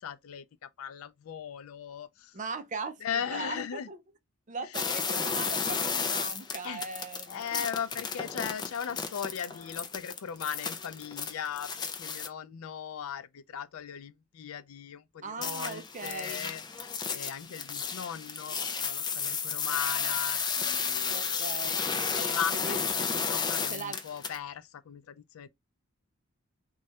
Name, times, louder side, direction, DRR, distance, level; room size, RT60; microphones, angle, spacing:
voice 1, 0.0-2.4 3.0-3.9 6.6-6.8 7.3-11.7 12.0-21.3 22.1-22.8 23.1-25.5, left 8 dB, 85° left, 0.4 m, -38 dB
voice 2, 2.3-3.0 3.3-4.0 4.5-7.7 15.2-16.5 21.1-21.8 22.5-22.8 23.7-24.0, right 4 dB, 35° right, 0.5 m, -39 dB
sound 1, 4.7-12.3 15.4-24.4, left 6 dB, 20° left, 0.4 m, -33 dB
3.1 x 2.3 x 2.7 m
head